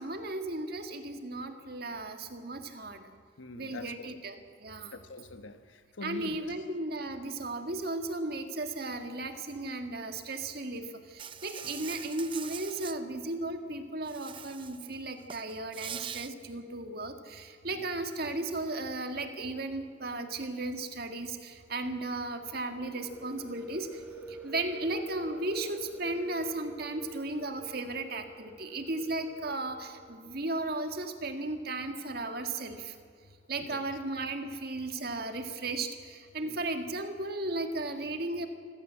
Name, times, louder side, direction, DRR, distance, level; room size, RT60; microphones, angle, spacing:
voice 1, 0.0-3.1 3.5-4.9 6.0-24.0 24.3-33.0 33.5-38.5, right 2 dB, 50° right, 1.9 m, -35 dB
voice 2, 3.4-4.1 4.9-6.4 11.6-11.7 17.7-17.9 33.6-33.8 36.4-36.6, left 2 dB, 85° left, 1.2 m, -44 dB
Insect, 11.2-13.0 14.1-14.9 15.2-16.3, right 8 dB, 25° right, 0.6 m, -42 dB
sound 1, 22.8-30.4, equal, 10° right, 1.7 m, -48 dB
25.0 x 16.0 x 7.6 m
head